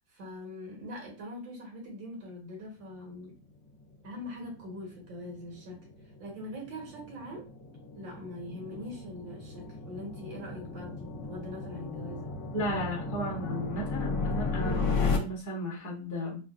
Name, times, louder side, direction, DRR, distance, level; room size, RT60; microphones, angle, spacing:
voice 1, 0.0-3.4 4.0-5.9 6.2-7.5 8.0-12.3, left 1 dB, 80° right, -1 dB, 1.9 m, -42 dB
sound 1, 4.0-15.2, left 4 dB, 75° left, 1.2 m, -35 dB
voice 2, 12.5-16.4, equal, 15° left, -4 dB, 0.7 m, -34 dB
3.7 x 2.2 x 2.4 m, 0.34 s
omnidirectional pair, 2.0 m